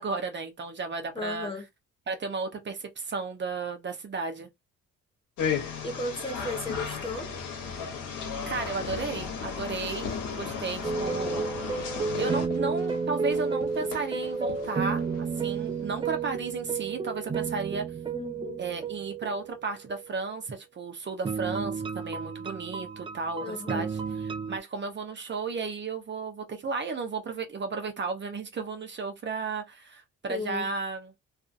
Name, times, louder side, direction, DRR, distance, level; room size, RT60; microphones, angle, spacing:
voice 1, 0.0-1.5 2.1-4.5 8.5-10.1 10.4-11.5 12.2-17.9 18.6-31.1, right 4 dB, 35° right, 0.8 m, -34 dB
voice 2, 1.1-1.6 5.8-7.3 18.1-18.6 23.4-23.9 30.3-30.7, left 2 dB, 15° left, 0.8 m, -35 dB
sound 1, 5.4-12.5, left 6 dB, 80° left, 1.0 m, -34 dB
Fireworks, 7.3-16.3, left 5 dB, 55° left, 1.1 m, -43 dB
sound 2, 10.8-20.1 21.2-24.6, right 5 dB, 20° right, 0.3 m, -32 dB
2.6 x 2.4 x 2.5 m
cardioid pair, 90°, 30 cm